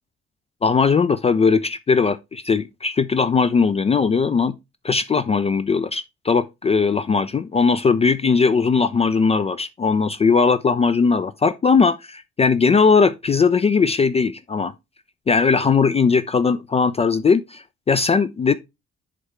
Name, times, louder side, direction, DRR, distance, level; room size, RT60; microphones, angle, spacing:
voice 1, 0.6-4.5 4.8-14.7 15.3-18.5, left 5 dB, 20° left, 0.4 m, -19 dB
9.9 x 3.6 x 3.1 m
figure-of-eight pair, 40°, 33 cm